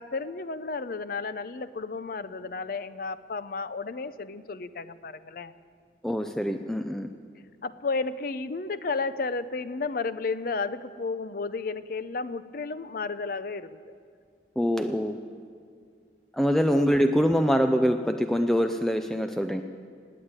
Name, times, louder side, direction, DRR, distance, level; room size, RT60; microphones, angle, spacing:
voice 1, 0.0-5.5 7.6-13.8 16.7-16.9, left 4 dB, 55° left, 14 dB, 0.6 m, -32 dB
voice 2, 6.0-7.1 14.6-15.2 16.3-19.6, equal, ahead, 7 dB, 0.4 m, -24 dB
17.5 x 8.7 x 9.6 m, 2.2 s
head